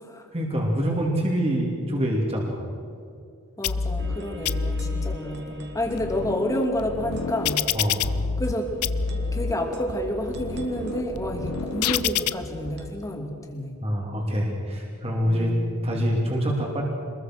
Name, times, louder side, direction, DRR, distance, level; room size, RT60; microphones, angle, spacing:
voice 1, 0.3-2.6 7.7-8.1 13.8-15.5 15.8-16.8, equal, 25° right, -1 dB, 3.2 m, -25 dB
sound 1, 3.6-4.2 4.4-5.2 5.7-8.5 8.8-9.5 10.1-12.3, left 6 dB, 85° left, 0.7 m, -28 dB
voice 2, 3.6-7.7 8.4-8.7 9.3-13.8 15.2-16.1, left 1 dB, 15° left, 2 dB, 2.9 m, -30 dB
sound 2, 4.0-12.9, right 1 dB, 50° right, 2.7 m, -39 dB
26.0 x 21.5 x 6.3 m, 2.4 s
head